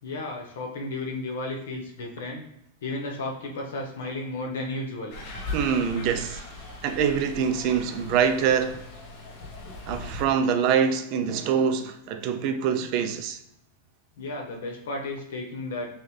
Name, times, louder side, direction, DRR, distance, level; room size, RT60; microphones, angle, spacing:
voice 1, 0.0-2.4 2.8-5.5 14.2-15.9, left 2 dB, 75° left, 1.3 m, -33 dB
sound 1, 5.1-10.2, left 2 dB, 40° left, 1.1 m, -39 dB
voice 2, 5.5-6.4 6.8-8.8 9.8-13.4, right 7 dB, 35° right, 0.5 m, -24 dB
6.3 x 2.4 x 3.3 m
supercardioid pair, 170°, 0 cm